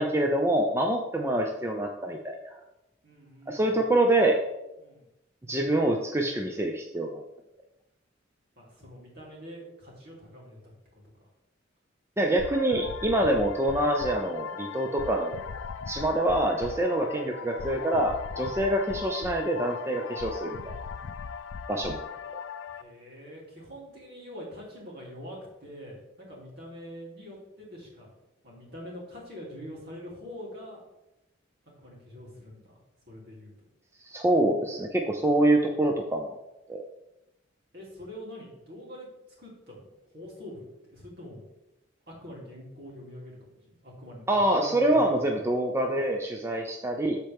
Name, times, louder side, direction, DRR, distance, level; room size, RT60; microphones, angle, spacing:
voice 1, 0.0-2.6 3.5-4.4 5.5-7.2 12.2-15.4 15.9-20.7 21.7-22.0 34.0-36.4 36.7-36.8 44.3-47.2, right 1 dB, 15° right, 2 dB, 0.5 m, -26 dB
voice 2, 3.0-3.8 4.8-5.1 8.6-10.7 11.2-11.3 22.7-28.1 28.4-30.8 31.8-32.8 33.1-33.5 37.7-39.1 39.4-41.4 42.1-45.5, equal, 55° right, -4 dB, 3.1 m, -45 dB
sound 1, 12.4-22.8, left 6 dB, 85° left, 0.4 m, -38 dB
13.0 x 4.4 x 3.5 m, 0.95 s
head